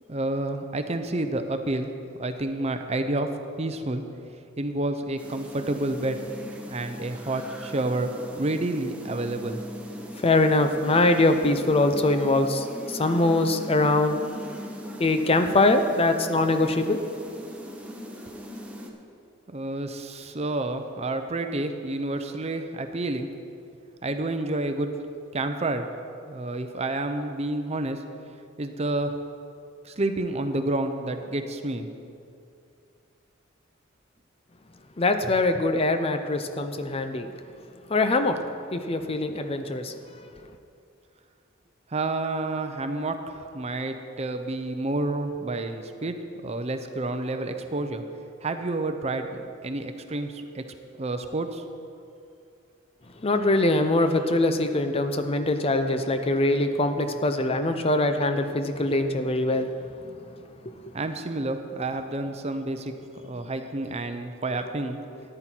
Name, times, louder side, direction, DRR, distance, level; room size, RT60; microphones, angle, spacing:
voice 1, 0.1-1.9 2.2-3.3 3.6-4.0 4.6-6.2 6.7-9.6 19.5-23.3 24.0-24.9 25.3-25.9 26.3-28.0 28.6-29.1 29.8-31.9 41.9-46.1 46.4-48.0 48.4-50.6 51.0-51.6 60.9-65.0, right 2 dB, 30° right, 7 dB, 0.7 m, -29 dB
sound 1, 5.2-18.9, equal, 5° right, 1.0 m, -40 dB
voice 2, 10.2-14.2 15.0-17.0 35.0-37.3 37.9-38.4 38.7-39.9 40.2-40.3 53.2-59.7 60.1-60.2, left 2 dB, 30° left, 8 dB, 0.6 m, -23 dB
13.5 x 10.0 x 4.5 m, 2.5 s
head